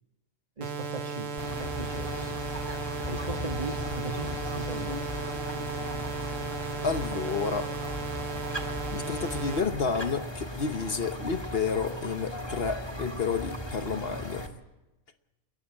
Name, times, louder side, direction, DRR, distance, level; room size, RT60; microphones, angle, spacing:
voice 1, 0.6-2.4 3.0-5.0, right 3 dB, 35° right, 1.4 m, -38 dB
sound 1, 0.6-9.6, right 4 dB, 80° right, 1.6 m, -36 dB
sound 2, 1.4-14.5, equal, 20° left, 1.8 m, -37 dB
voice 2, 6.8-7.7 8.9-14.5, left 5 dB, 50° left, 1.1 m, -30 dB
28.5 x 15.0 x 7.3 m
omnidirectional pair, 1.3 m